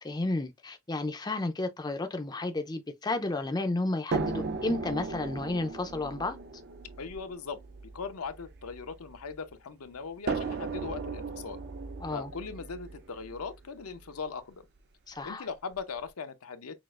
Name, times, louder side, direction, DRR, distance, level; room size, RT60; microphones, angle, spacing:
voice 1, 0.0-6.4 12.0-12.3 15.1-15.5, left 2 dB, 20° left, 0.4 m, -32 dB
sound 1, 4.1-9.3 10.3-14.2 15.2-15.3 15.7-15.8, right 4 dB, 50° right, 0.5 m, -37 dB
voice 2, 7.0-7.6 7.9-11.6 12.1-14.6 15.2-16.8, left 5 dB, 80° left, 0.6 m, -39 dB
6.1 x 2.4 x 2.4 m
head